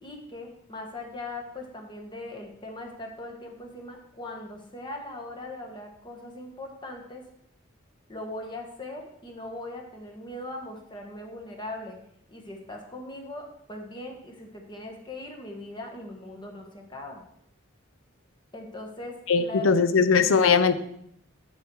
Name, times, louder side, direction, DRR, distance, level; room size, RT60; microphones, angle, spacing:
voice 1, 0.0-7.2 8.1-12.0 12.3-17.2 18.5-19.7, left 2 dB, 25° left, 1 dB, 1.3 m, -40 dB
voice 2, 19.3-20.7, left 5 dB, 70° left, 13 dB, 0.6 m, -20 dB
6.9 x 6.8 x 4.7 m, 0.71 s
head